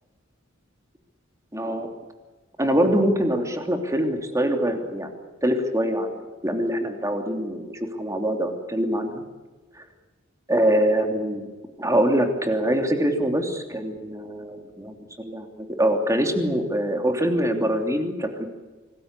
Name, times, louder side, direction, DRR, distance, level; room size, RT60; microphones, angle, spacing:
voice 1, 1.5-1.9 2.6-5.1 5.4-6.1 6.4-7.7 8.0-9.2 10.5-11.5 11.8-18.5, equal, 15° right, 5 dB, 3.0 m, -24 dB
26.5 x 19.5 x 8.3 m, 1.3 s
head